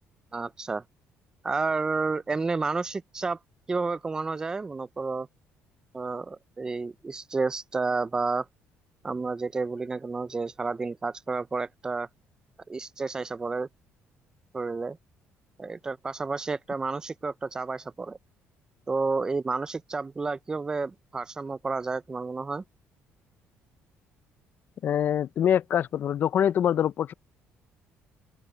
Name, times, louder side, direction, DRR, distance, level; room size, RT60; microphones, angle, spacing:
voice 1, 0.3-0.8 1.4-3.4 3.7-5.3 5.9-8.5 9.0-12.1 12.7-13.7 14.5-15.0 15.6-18.2 18.9-22.6, right 4 dB, 15° right, 0.4 m, -30 dB
voice 2, 24.8-27.1, left 9 dB, 45° left, 0.5 m, -24 dB
open air
cardioid pair, 140°, 4 cm